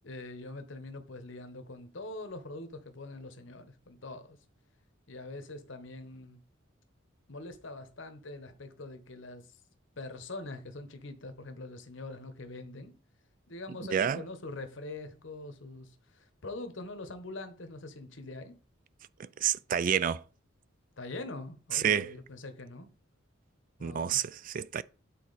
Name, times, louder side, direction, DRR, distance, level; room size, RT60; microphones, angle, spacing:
voice 1, 0.0-4.4 5.1-6.4 7.3-9.6 10.0-12.9 13.5-18.5 21.0-22.9 23.8-24.2, left 2 dB, 70° left, 1.0 m, -43 dB
voice 2, 13.9-14.2 19.2-20.2 21.7-22.1 23.8-24.8, right 8 dB, 40° right, 0.3 m, -29 dB
8.5 x 4.1 x 4.0 m
head